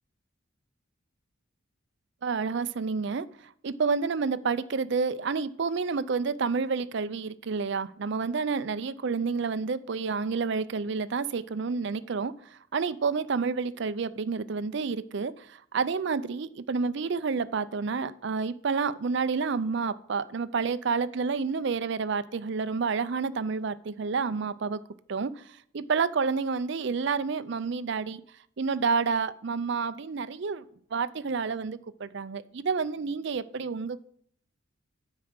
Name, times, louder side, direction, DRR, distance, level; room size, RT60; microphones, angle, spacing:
voice 1, 2.2-3.3 3.6-12.3 12.7-24.8 25.1-25.4 25.7-28.2 28.6-30.6 30.9-34.0, right 5 dB, 55° right, 0.5 m, -29 dB
9.4 x 4.8 x 6.5 m
head